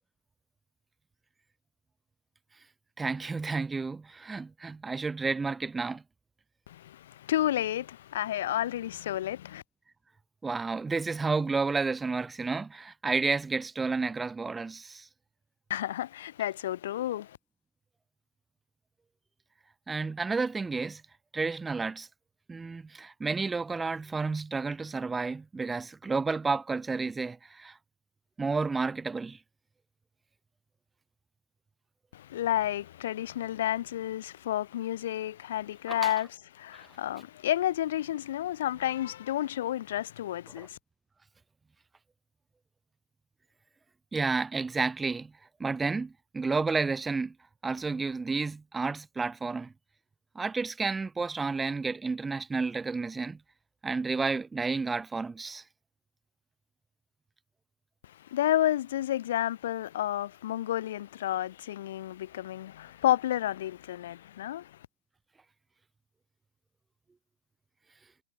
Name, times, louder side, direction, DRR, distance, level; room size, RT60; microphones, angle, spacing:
voice 1, 3.0-6.0 10.4-15.1 19.9-21.0 21.3-22.1 22.5-27.8 28.4-29.4 35.9-36.1 36.7-36.9 40.6-40.7 44.1-45.3 45.6-47.4 47.6-49.7 50.4-53.4 53.8-55.6, right 4 dB, 10° right, 3.8 m, -31 dB
voice 2, 6.7-9.6 15.7-17.4 32.1-36.3 36.5-40.8 58.2-64.7, left 12 dB, 55° left, 3.8 m, -31 dB
figure-of-eight pair, 110°, 0 cm